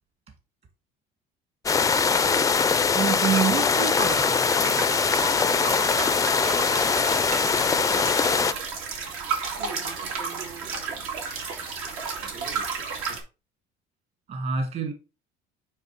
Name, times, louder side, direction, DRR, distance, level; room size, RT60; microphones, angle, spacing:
sound 1, 1.7-8.5, left 5 dB, 15° left, 0.3 m, -22 dB
voice 1, 2.9-5.4 14.3-14.9, right 6 dB, 45° right, 1.8 m, -28 dB
sound 2, 4.0-13.2, right 5 dB, 90° right, 2.2 m, -32 dB
voice 2, 9.6-11.1 12.3-13.2, right 4 dB, 75° right, 3.3 m, -44 dB
9.0 x 3.2 x 4.7 m
cardioid pair, 120°, 21 cm